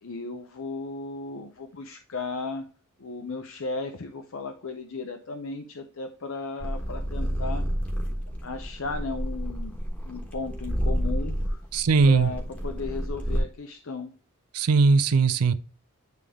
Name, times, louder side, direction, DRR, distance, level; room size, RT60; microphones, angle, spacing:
voice 1, 0.0-2.7 3.0-7.6 8.4-9.8 10.0-11.6 12.0-14.1, left 3 dB, 60° left, 0.6 m, -35 dB
sound 1, 6.6-13.4, equal, 5° left, 1.2 m, -30 dB
voice 2, 11.7-12.3 14.5-15.5, right 4 dB, 85° right, 0.5 m, -19 dB
9.4 x 3.4 x 3.6 m
head